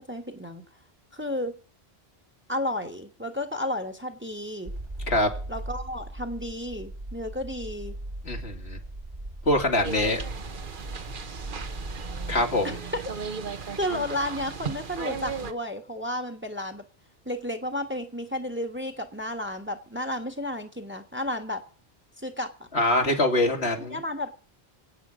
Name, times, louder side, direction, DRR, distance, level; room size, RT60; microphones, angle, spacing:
voice 1, 0.1-0.6 1.1-1.6 2.5-4.7 5.5-7.9 12.6-12.7 13.8-16.8 17.2-21.6 22.2-22.7 23.8-24.4, left 1 dB, 10° right, 7 dB, 1.3 m, -32 dB
sound 1, 4.7-12.4, right 1 dB, 40° right, 1.9 m, -38 dB
voice 2, 8.2-8.8 9.5-10.2 12.3-12.8 22.7-24.0, left 1 dB, 80° left, 2 dB, 2.7 m, -24 dB
sound 2, 9.8-15.5, right 5 dB, 55° right, 1.1 m, -36 dB
25.5 x 8.7 x 5.0 m, 0.42 s
omnidirectional pair, 1.1 m